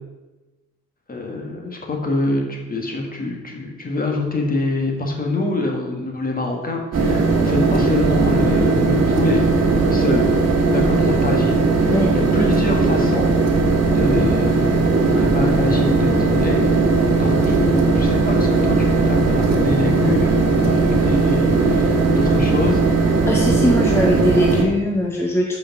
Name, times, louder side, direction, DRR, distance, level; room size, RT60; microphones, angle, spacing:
voice 1, 1.1-9.5 9.9-10.3 10.7-13.3 13.6-16.6 17.1-22.8, left 2 dB, 30° left, 1 dB, 1.7 m, -25 dB
sound 1, 6.9-24.6, right 3 dB, 55° right, 1.5 m, -18 dB
voice 2, 23.3-25.6, equal, 10° left, 0 dB, 0.9 m, -20 dB
5.8 x 5.2 x 5.9 m, 1.2 s
cardioid pair, 90°, 30 cm